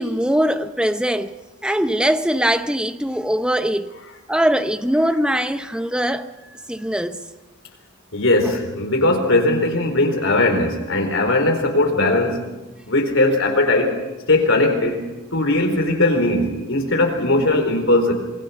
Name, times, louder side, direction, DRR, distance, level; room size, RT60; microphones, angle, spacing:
voice 1, 0.0-1.3 1.6-3.9 4.3-6.3 6.7-7.2, equal, 5° right, 0.8 m, -21 dB
voice 2, 8.1-12.4 12.9-13.9 14.3-15.0 15.3-18.1, left 2 dB, 70° left, 4.4 m, -19 dB
26.5 x 22.5 x 5.9 m
head